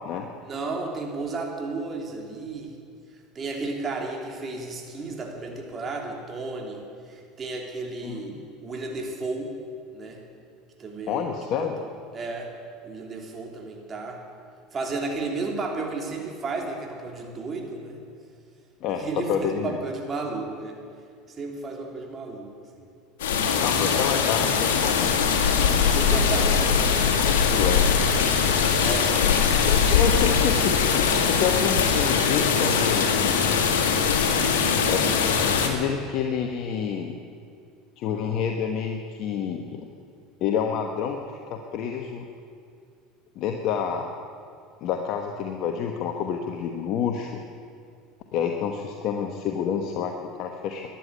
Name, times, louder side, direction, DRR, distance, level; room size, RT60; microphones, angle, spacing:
voice 1, 0.4-2.8 3.3-9.5 9.9-10.2 10.8-12.5 12.8-14.2 14.7-18.0 19.0-20.8 21.4-22.9 25.8-27.0 28.8-29.3 34.3-34.7, right 3 dB, 30° right, 1 dB, 3.2 m, -33 dB
voice 2, 8.0-8.4 11.1-11.8 18.8-19.8 23.6-25.1 27.2-28.0 29.7-33.4 34.8-37.2 38.0-39.9 40.4-42.3 43.3-44.2 44.8-47.4 48.3-51.0, left 7 dB, 55° left, 4 dB, 1.2 m, -28 dB
sound 1, 23.2-35.7, left 6 dB, 85° left, 1.9 m, -21 dB
13.5 x 10.5 x 9.6 m, 2.4 s
hypercardioid pair, 90°, 0 cm